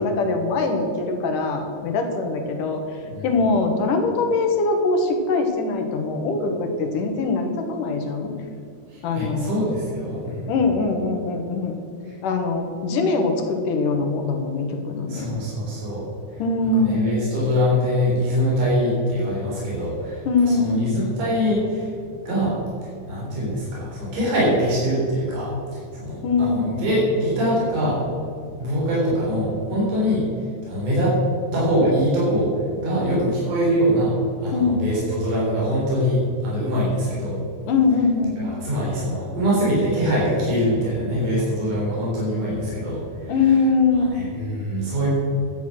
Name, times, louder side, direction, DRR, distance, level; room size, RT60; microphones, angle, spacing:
voice 1, 0.0-8.3 9.0-9.5 10.5-11.8 12.2-15.3 16.4-17.0 20.3-20.8 26.2-26.7 34.5-34.8 37.7-38.4 43.3-44.1, left 3 dB, 80° left, 4 dB, 3.0 m, -22 dB
voice 2, 8.9-10.5 15.1-16.0 16.3-16.4 16.8-21.9 22.2-22.5 23.1-28.0 28.6-30.2 30.6-31.2 31.5-32.5 32.8-37.4 38.4-43.6 44.0-45.1, equal, 75° right, -7 dB, 5.4 m, -23 dB
12.0 x 9.2 x 6.2 m, 2.5 s
omnidirectional pair, 3.7 m